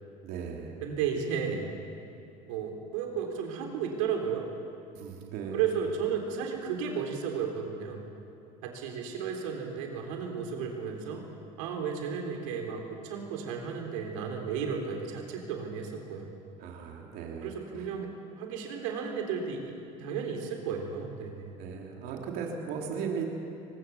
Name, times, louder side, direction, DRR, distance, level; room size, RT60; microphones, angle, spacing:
voice 1, 0.2-0.8 4.9-5.7 16.6-17.9 21.6-23.2, right 6 dB, 70° right, 0 dB, 3.3 m, -37 dB
voice 2, 0.8-1.7 2.5-4.5 5.5-8.0 8.6-11.2 11.6-16.3 17.4-21.5, right 6 dB, 85° right, 2 dB, 3.7 m, -33 dB
23.5 x 19.5 x 7.1 m, 2.7 s
supercardioid pair, 90°, 16 cm